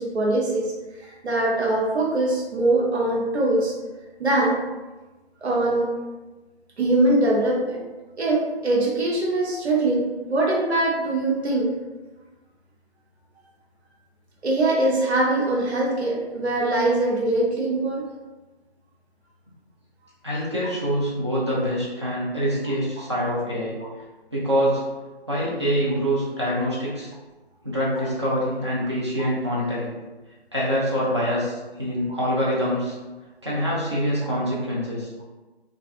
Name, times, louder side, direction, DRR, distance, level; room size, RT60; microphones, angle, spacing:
voice 1, 0.0-3.7 4.2-4.6 5.4-5.9 6.8-7.8 8.2-11.7 14.4-18.1 23.8-23.9 29.2-29.3 32.1-32.2, right 2 dB, 85° right, -3 dB, 0.7 m, -22 dB
voice 2, 20.2-23.8 24.3-24.8 25.3-27.1 27.6-29.9 30.5-33.0 33.4-35.1, equal, 25° right, -7 dB, 0.5 m, -25 dB
2.6 x 2.4 x 2.3 m, 1.2 s
figure-of-eight pair, 160°, 32 cm